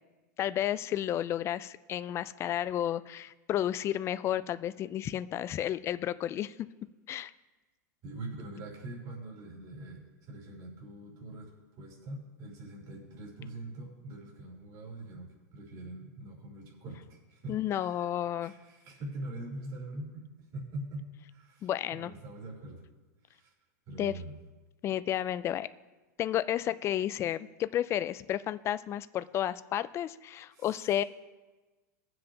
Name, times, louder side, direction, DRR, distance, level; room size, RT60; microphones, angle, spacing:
voice 1, 0.4-6.5 7.1-7.3 17.5-18.5 21.6-22.1 24.0-24.1 24.8-25.7 26.2-31.0, left 11 dB, 25° left, 14 dB, 0.4 m, -32 dB
voice 2, 8.0-10.0 10.3-18.1 18.4-21.0 21.3-22.8 23.2-23.5 23.9-24.3 30.5-30.9, right 1 dB, 40° right, -3 dB, 3.7 m, -43 dB
21.5 x 7.6 x 2.9 m, 1.2 s
supercardioid pair, 130°, 10 cm